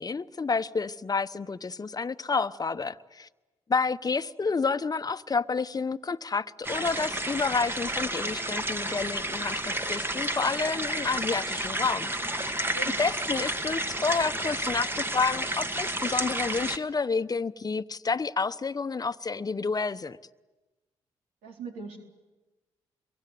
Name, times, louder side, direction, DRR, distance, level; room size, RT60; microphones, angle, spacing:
voice 1, 0.0-3.3 3.7-12.5 13.0-20.2, left 4 dB, 35° left, 1.0 m, -29 dB
sound 1, 6.6-16.8, right 1 dB, 20° right, 1.8 m, -31 dB
voice 2, 12.4-13.0 21.4-22.0, right 4 dB, 85° right, 4.1 m, -41 dB
27.5 x 23.0 x 9.4 m
hypercardioid pair, 50°, 12 cm